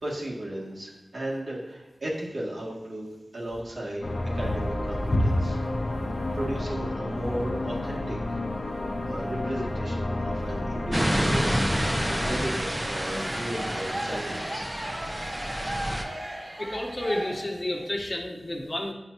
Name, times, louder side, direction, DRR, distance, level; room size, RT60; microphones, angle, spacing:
voice 1, 0.0-3.1 3.3-4.1 4.3-5.6 6.3-8.2 8.7-11.6 11.9-14.8, right 1 dB, 75° right, -5 dB, 1.9 m, -35 dB
sound 1, 4.0-12.5, left 2 dB, 65° left, 0.8 m, -31 dB
sound 2, 10.9-16.0, equal, 15° right, 0.7 m, -29 dB
sound 3, 12.0-17.9, right 1 dB, 55° right, 1.7 m, -36 dB
voice 2, 16.6-18.9, left 1 dB, 45° left, 0 dB, 1.1 m, -31 dB
9.0 x 5.9 x 2.6 m, 1.1 s
wide cardioid pair, 65°, 0 cm